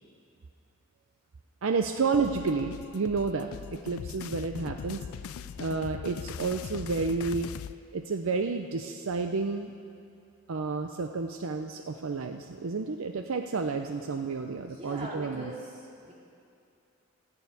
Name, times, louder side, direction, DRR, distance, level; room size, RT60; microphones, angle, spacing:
voice 1, 1.6-5.1 5.6-7.5 7.9-9.7 10.5-15.5, right 4 dB, 70° right, 5 dB, 0.5 m, -30 dB
sound 1, 2.1-7.7, left 7 dB, 75° left, 0.4 m, -40 dB
voice 2, 14.6-16.1, right 1 dB, 30° right, -5 dB, 2.6 m, -42 dB
12.5 x 6.9 x 9.2 m, 2.5 s
head